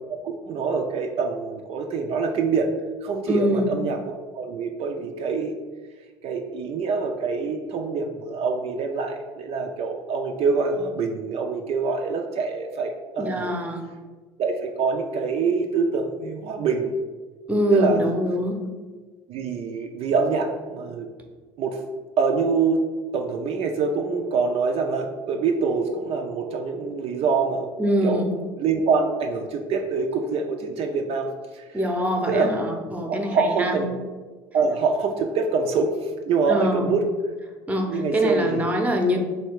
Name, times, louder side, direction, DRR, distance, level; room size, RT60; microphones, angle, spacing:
voice 1, 0.1-2.7 3.0-5.5 6.2-13.5 14.4-17.0 17.7-18.1 19.3-21.1 21.6-21.8 22.2-27.7 28.0-28.2 28.6-31.6 32.3-32.5 33.1-33.9 34.5-37.1 37.9-38.7, right 4 dB, 55° right, 3 dB, 0.4 m, -25 dB
voice 2, 3.3-3.8 13.2-13.8 17.5-18.6 27.8-28.3 31.7-33.8 36.5-36.9 37.7-39.2, equal, 10° right, 3 dB, 0.7 m, -24 dB
3.2 x 2.8 x 4.5 m, 1.4 s
supercardioid pair, 90°, 12 cm